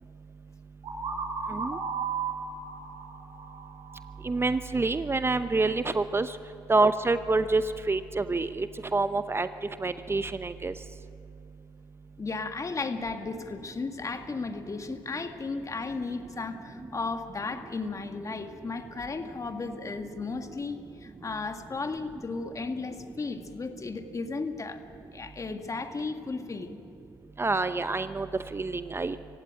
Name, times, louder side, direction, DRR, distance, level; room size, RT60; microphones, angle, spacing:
sound 1, 0.8-4.6, right 5 dB, 55° right, 5.7 m, -35 dB
voice 1, 4.2-6.3 6.7-7.6 7.9-8.7 8.9-9.5 9.8-10.7 27.4-28.3 28.5-29.2, right 3 dB, 25° right, 12 dB, 0.8 m, -27 dB
voice 2, 12.2-24.8 25.1-26.8, left 4 dB, 30° left, 6 dB, 1.9 m, -35 dB
25.0 x 16.0 x 9.1 m, 2.6 s
hypercardioid pair, 55°, 10 cm